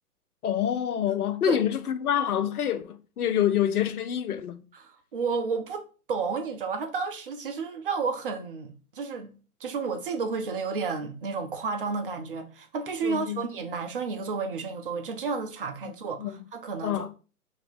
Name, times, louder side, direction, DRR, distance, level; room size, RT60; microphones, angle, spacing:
voice 1, 0.4-4.6 13.0-13.4 16.2-16.3 16.8-17.1, left 10 dB, 75° left, 0.6 m, -27 dB
voice 2, 4.8-9.3 9.6-17.1, right 5 dB, 40° right, 0.6 m, -32 dB
2.8 x 2.6 x 4.0 m
figure-of-eight pair, 135°, 45 cm